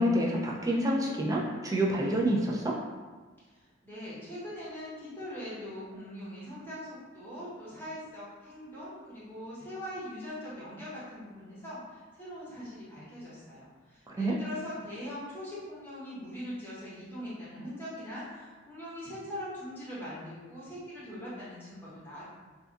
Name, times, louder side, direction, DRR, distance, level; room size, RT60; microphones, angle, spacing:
voice 1, 0.0-2.8 14.1-14.4, equal, 20° right, -2 dB, 0.3 m, -27 dB
voice 2, 3.5-22.4, equal, 10° left, -10 dB, 0.8 m, -42 dB
2.7 x 2.3 x 2.3 m, 1.4 s
head